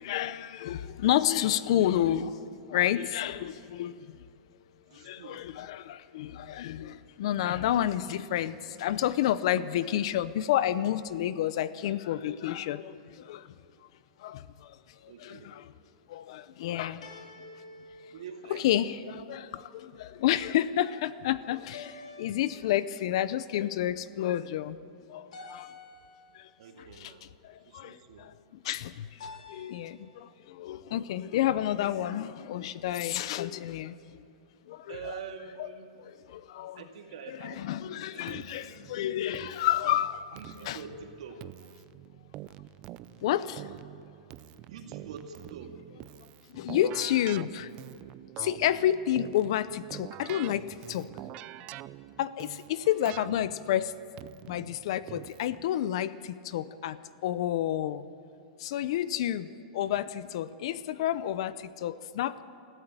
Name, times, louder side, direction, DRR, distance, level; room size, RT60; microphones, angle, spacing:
voice 1, 0.0-2.4 2.7-4.2 4.9-13.5 14.2-14.8 15.0-15.7 16.1-17.1 18.5-24.8 25.1-25.7 26.3-26.5 27.0-27.1 27.4-28.3 28.6-34.2 34.7-35.1 35.6-35.7 36.0-36.8 37.3-40.4 40.6-40.8 43.2-43.7 46.5-47.7 48.4-51.1 52.2-53.9 54.5-58.1 58.6-59.5 59.7-62.4, left 12 dB, 55° left, 16 dB, 0.6 m, -30 dB
voice 2, 4.9-5.4 15.1-15.5 18.1-19.0 26.6-27.3 27.6-28.3 34.9-35.9 36.8-37.6 38.1-38.7 40.3-41.4 44.7-45.7 46.1-46.2, right 6 dB, 70° right, 4 dB, 2.2 m, -45 dB
sound 1, 12.6-13.3 17.0-19.0 21.7-23.1 25.3-26.5 29.2-30.2, left 3 dB, 85° left, 3.1 m, -49 dB
Keyboard (musical), 38.3-55.7, right 15 dB, 30° right, 0.4 m, -46 dB
20.5 x 14.0 x 8.9 m, 2.6 s
supercardioid pair, 165°, 4 cm